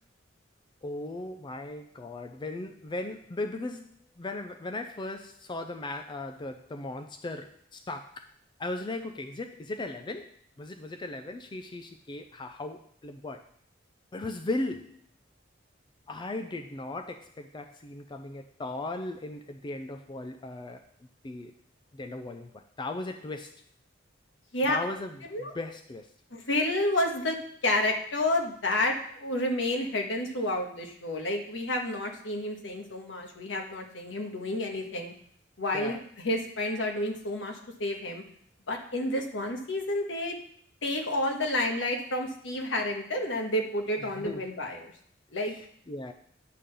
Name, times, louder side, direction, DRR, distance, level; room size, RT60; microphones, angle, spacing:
voice 1, 0.8-8.3 8.6-13.5 14.1-15.0 16.1-20.9 21.2-21.5 21.9-23.6 24.7-26.1 35.7-36.0 44.0-44.4 45.4-45.6 45.9-46.1, left 2 dB, 25° left, 6 dB, 0.4 m, -37 dB
voice 2, 26.3-27.4 27.6-35.1 35.6-38.2 38.7-40.4 40.8-44.9 45.3-45.5, left 1 dB, 70° left, 2 dB, 1.4 m, -30 dB
10.5 x 3.8 x 6.8 m, 0.63 s
head